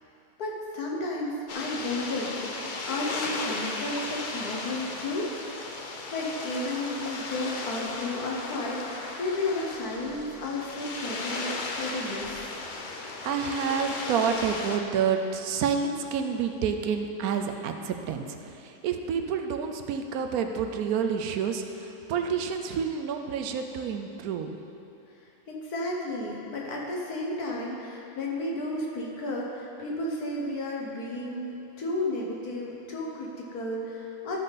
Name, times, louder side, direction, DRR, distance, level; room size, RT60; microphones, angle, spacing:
voice 1, 0.4-5.4 6.1-12.5 25.6-34.4, left 2 dB, 90° left, -2 dB, 1.8 m, -33 dB
sound 1, 1.5-14.8, left 3 dB, 50° left, 0.6 m, -36 dB
voice 2, 13.0-24.6, right 6 dB, 80° right, 5 dB, 1.1 m, -29 dB
12.5 x 5.4 x 4.1 m, 2.8 s
omnidirectional pair, 1.6 m